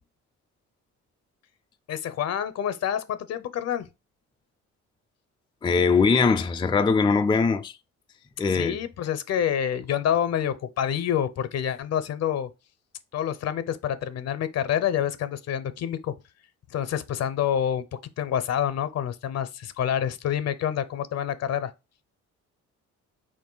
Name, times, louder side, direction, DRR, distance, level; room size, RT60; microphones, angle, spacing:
voice 1, 1.9-3.9 8.5-12.5 13.1-16.1 16.7-17.8 18.2-21.7, left 9 dB, 60° left, 0.6 m, -27 dB
voice 2, 5.6-7.8 8.4-8.8, left 4 dB, 15° left, 0.4 m, -21 dB
4.4 x 2.6 x 3.8 m
cardioid pair, 90°, 30 cm